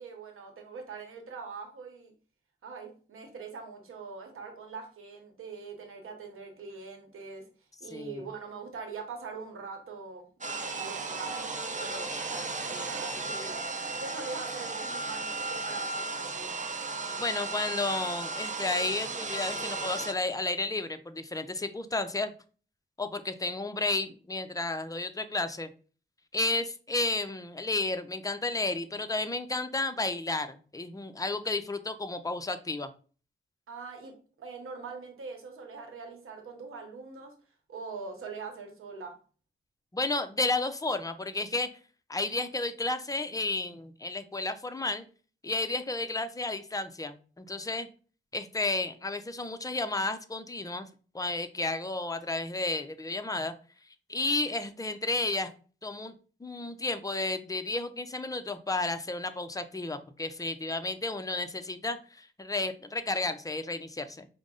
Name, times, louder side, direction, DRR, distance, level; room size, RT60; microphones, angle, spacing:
voice 1, 0.0-2.1 2.6-7.5 7.8-13.7 14.0-16.6 33.7-37.3 37.7-39.1, right 4 dB, 90° right, 4 dB, 1.0 m, -43 dB
voice 2, 7.9-8.3 17.2-22.3 23.0-25.7 26.3-32.9 39.9-41.7 42.1-45.1 45.4-47.9 48.3-50.9 51.1-53.5 54.1-55.5 55.8-56.1 56.4-64.3, left 2 dB, 15° left, 9 dB, 0.5 m, -32 dB
sound 1, 10.4-20.1, right 3 dB, 35° right, 0.6 m, -35 dB
5.0 x 2.0 x 3.7 m, 0.39 s
cardioid pair, 75°, 21 cm